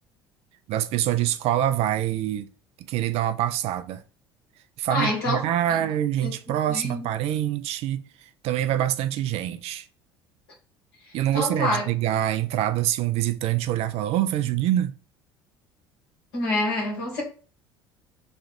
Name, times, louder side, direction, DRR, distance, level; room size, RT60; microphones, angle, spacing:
voice 1, 0.7-2.5 2.9-4.0 4.8-8.0 8.4-9.9 11.1-14.9, right 12 dB, 55° right, 0.4 m, -25 dB
voice 2, 4.9-5.8 6.2-6.3 6.7-7.1 11.3-11.9 16.3-17.2, left 1 dB, 70° left, 1.7 m, -27 dB
3.2 x 2.3 x 4.2 m
hypercardioid pair, 65°, 13 cm